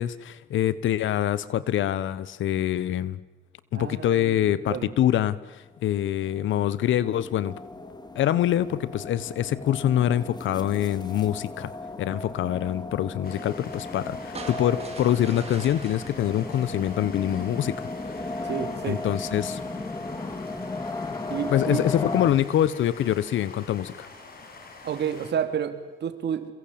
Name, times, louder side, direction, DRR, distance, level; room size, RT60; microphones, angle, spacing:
voice 1, 0.0-3.2 3.7-7.6 8.1-11.7 12.0-17.9 18.2-18.5 18.9-19.6 21.5-24.1, left 11 dB, 75° left, 18 dB, 1.2 m, -25 dB
voice 2, 3.8-4.9 18.4-19.0 21.3-21.8 24.8-26.5, right 8 dB, 60° right, 9 dB, 3.1 m, -30 dB
sound 1, 6.1-22.3, left 3 dB, 20° left, 2.8 m, -36 dB
sound 2, 13.2-25.3, left 3 dB, 50° left, 6.0 m, -46 dB
sound 3, 14.3-17.6, right 4 dB, 30° right, 4.3 m, -43 dB
28.0 x 22.5 x 8.8 m, 1.2 s
cardioid pair, 90°, 20 cm